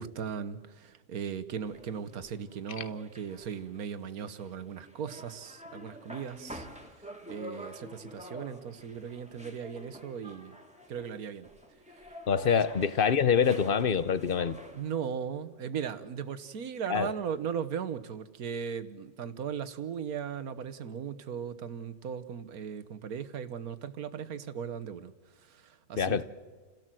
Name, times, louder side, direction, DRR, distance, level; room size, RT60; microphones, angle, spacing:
voice 1, 0.0-6.7 7.0-10.6 10.9-11.5 12.1-12.2 12.5-12.6 14.7-25.1 25.4-26.2, right 7 dB, 75° right, 11 dB, 1.6 m, -37 dB
sound 1, 1.7-14.9, equal, 5° right, 2.1 m, -49 dB
voice 2, 12.3-14.6 16.9-17.1 26.0-26.2, left 7 dB, 45° left, 15 dB, 0.9 m, -25 dB
28.5 x 17.0 x 7.6 m, 1.4 s
omnidirectional pair, 1.6 m